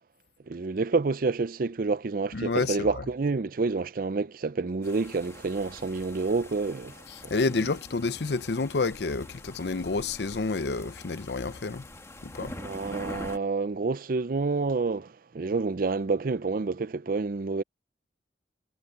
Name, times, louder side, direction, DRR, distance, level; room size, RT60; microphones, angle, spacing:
voice 1, 0.5-7.3 12.4-17.6, right 4 dB, 55° right, 0.5 m, -28 dB
voice 2, 2.3-3.0 7.1-11.9 12.2-12.5, left 3 dB, 70° left, 0.7 m, -29 dB
sound 1, 4.8-13.4, left 1 dB, 15° left, 1.6 m, -45 dB
head